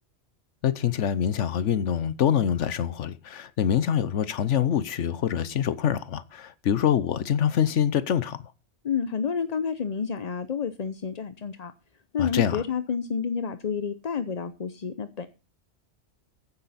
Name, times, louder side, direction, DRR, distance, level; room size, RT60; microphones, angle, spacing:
voice 1, 0.6-8.4 12.2-12.6, left 9 dB, 85° left, 1.2 m, -25 dB
voice 2, 8.8-11.7 12.1-15.3, left 6 dB, 40° left, 0.7 m, -29 dB
15.0 x 9.9 x 4.2 m
omnidirectional pair, 1.2 m